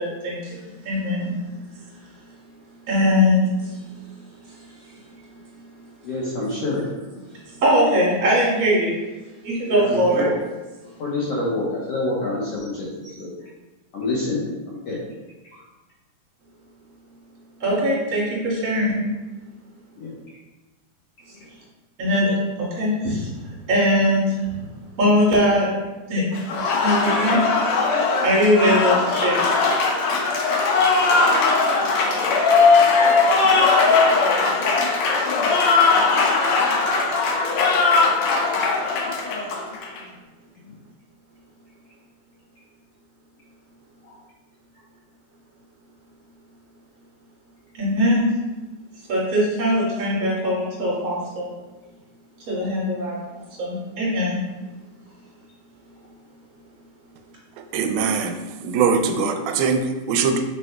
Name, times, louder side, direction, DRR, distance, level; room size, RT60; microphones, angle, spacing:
voice 1, 0.0-2.5 2.9-6.1 7.3-9.0 9.4-10.3 17.6-19.0 21.2-21.5 22.0-26.3 26.7-27.5 28.2-29.5 47.7-48.3 48.9-51.5 52.5-53.2 53.5-54.4, equal, 45° right, 3.0 m, -22 dB
voice 2, 6.0-6.9 9.6-10.3 11.0-13.3 13.9-15.0 15.4-15.6 20.0-20.1 21.4-21.5 44.0-44.1 59.1-59.3, left 2 dB, 70° left, 1.5 m, -27 dB
Applause, 26.3-40.0, left 4 dB, 85° left, 1.5 m, -19 dB
voice 3, 57.6-60.4, right 5 dB, 85° right, 2.3 m, -22 dB
7.5 x 6.2 x 2.3 m
omnidirectional pair, 4.2 m